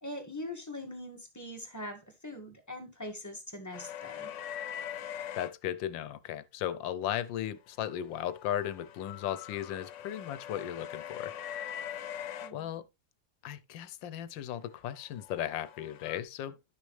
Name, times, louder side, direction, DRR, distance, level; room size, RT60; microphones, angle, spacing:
voice 1, 0.0-4.3 12.4-12.8, left 1 dB, 10° left, 1.8 m, -42 dB
sound 1, 3.7-5.5 7.9-12.5 14.9-16.2, left 10 dB, 70° left, 0.7 m, -42 dB
voice 2, 5.3-11.4 12.5-12.8 13.4-16.6, left 11 dB, 85° left, 1.5 m, -36 dB
12.0 x 6.2 x 3.2 m
omnidirectional pair, 2.0 m